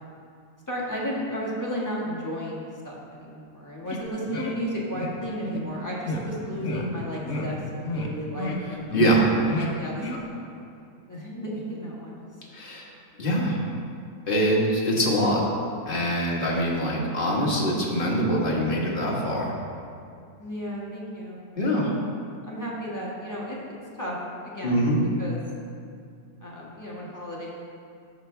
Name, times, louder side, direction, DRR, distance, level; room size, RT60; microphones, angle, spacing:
voice 1, 0.7-8.9 9.5-10.4 11.1-12.2 20.4-21.9 22.4-24.1 24.4-24.9 25.2-25.4 26.4-27.5, equal, 10° left, -6 dB, 1.4 m, -34 dB
sound 1, 3.9-4.0 4.3-4.5 4.9-5.1 5.4-5.6 6.0-6.2 6.6-6.8 7.2-7.5 7.8-8.1 8.3-8.6 8.9-9.2 9.5-9.7 10.0-10.2, left 2 dB, 50° left, 1.0 m, -31 dB
voice 2, 8.9-9.3 12.5-12.9 13.2-13.6 14.3-15.4 15.8-19.5 21.6-21.9 24.6-25.0, equal, 30° left, -4 dB, 1.6 m, -23 dB
14.5 x 5.8 x 3.3 m, 2.4 s
omnidirectional pair, 1.8 m